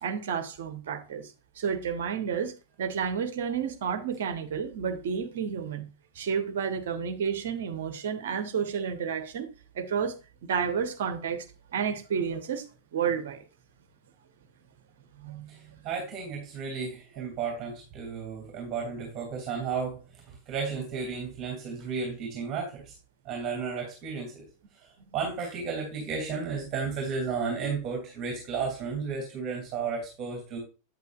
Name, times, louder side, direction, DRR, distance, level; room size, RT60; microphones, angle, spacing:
voice 1, 0.0-2.5 2.8-5.9 6.1-9.5 9.7-10.2 10.4-11.5 11.7-12.7 12.9-13.5 15.1-15.8, right 7 dB, 55° right, 1.1 m, -31 dB
voice 2, 15.5-22.9 23.2-24.5 24.7-30.6, right 5 dB, 30° right, 2.7 m, -33 dB
8.7 x 8.2 x 2.4 m
figure-of-eight pair, 90°, 0 cm